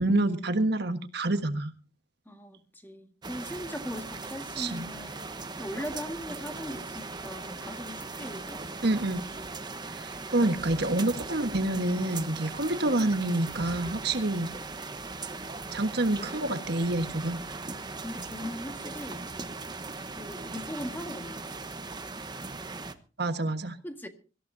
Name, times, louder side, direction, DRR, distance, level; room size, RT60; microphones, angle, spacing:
voice 1, 0.0-1.7 4.6-4.8 8.8-9.3 9.9-14.5 15.7-17.4 23.2-23.8, right 2 dB, 60° right, 1.5 m, -27 dB
voice 2, 2.2-8.9 18.0-19.3 20.2-21.5 23.8-24.1, equal, 10° left, 1.7 m, -40 dB
sound 1, 3.2-22.9, right 3 dB, 25° right, 1.1 m, -39 dB
25.0 x 15.0 x 2.7 m
head